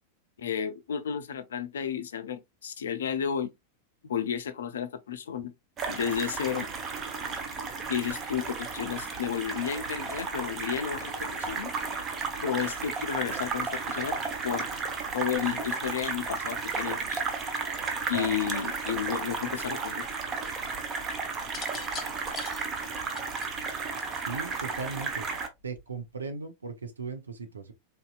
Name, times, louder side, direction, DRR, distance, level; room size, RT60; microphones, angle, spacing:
voice 1, 0.4-3.5 4.0-5.5 5.9-6.7 7.9-11.7 12.4-14.8 15.1-17.2 18.1-20.1, left 8 dB, 65° left, 0.4 m, -32 dB
sound 1, 5.8-25.5, right 4 dB, 25° right, 0.8 m, -33 dB
sound 2, 21.4-24.6 25.6-26.0, left 6 dB, 30° left, 0.8 m, -43 dB
voice 2, 24.3-25.3 25.6-27.7, right 4 dB, 75° right, 0.7 m, -37 dB
3.8 x 2.7 x 2.3 m
figure-of-eight pair, 90°, 0 cm